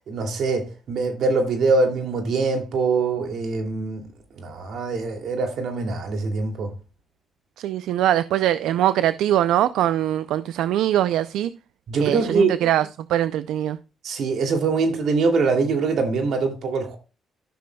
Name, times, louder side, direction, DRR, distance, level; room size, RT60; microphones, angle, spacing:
voice 1, 0.1-4.1 4.4-6.7 11.9-12.5 14.0-17.0, right 4 dB, 65° right, 2.5 m, -23 dB
voice 2, 7.6-11.5 12.0-13.8, right 12 dB, 85° right, 0.4 m, -22 dB
13.5 x 6.8 x 2.2 m
cardioid pair, 90°, 0 cm